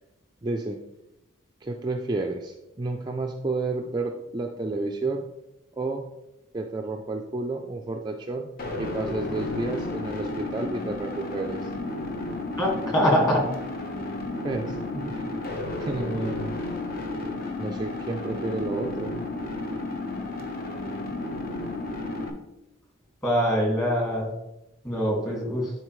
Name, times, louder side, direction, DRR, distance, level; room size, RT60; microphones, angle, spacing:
voice 1, 0.4-0.8 1.6-5.3 5.7-6.0 6.5-8.5 8.8-11.7 14.4-15.2 15.8-16.6 17.6-19.2, right 2 dB, 20° right, 3 dB, 0.4 m, -31 dB
sound 1, 8.6-22.3, left 2 dB, 45° left, 1.0 m, -32 dB
voice 2, 12.6-13.4 23.2-24.3 24.8-25.7, equal, 20° left, -1 dB, 1.9 m, -23 dB
11.0 x 4.3 x 3.2 m, 0.94 s
head